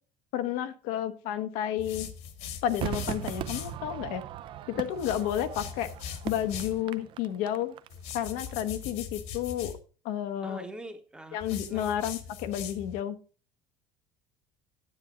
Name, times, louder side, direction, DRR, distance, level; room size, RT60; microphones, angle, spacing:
voice 1, 0.3-2.1 2.6-4.2 4.7-5.9 6.2-7.7 8.1-9.7 10.0-10.7 11.3-13.2, left 10 dB, 75° left, 1.0 m, -31 dB
sound 1, 1.8-3.8 4.9-6.8 7.9-9.8 11.4-13.0, left 8 dB, 60° left, 1.5 m, -41 dB
Crowd / Fireworks, 2.8-8.2 8.5-8.6, right 11 dB, 40° right, 0.6 m, -38 dB
voice 2, 10.4-12.0, right 1 dB, 5° right, 1.0 m, -44 dB
9.9 x 8.4 x 3.7 m
cardioid pair, 165°, 13 cm